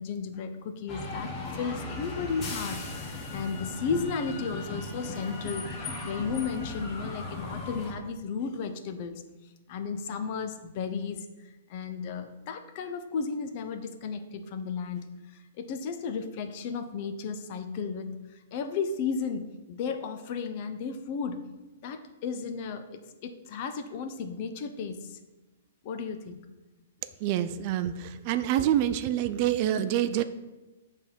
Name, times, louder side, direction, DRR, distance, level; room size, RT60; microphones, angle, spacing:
voice 1, 0.0-9.2 9.7-18.2 18.5-21.5 21.8-25.2 25.8-26.4, left 5 dB, 40° left, 8 dB, 0.7 m, -34 dB
sound 1, 0.9-7.9, left 2 dB, 25° left, 1.3 m, -37 dB
voice 2, 27.2-30.2, right 11 dB, 40° right, 12 dB, 0.4 m, -26 dB
6.8 x 3.5 x 6.0 m, 1.1 s
hypercardioid pair, 150°, 0 cm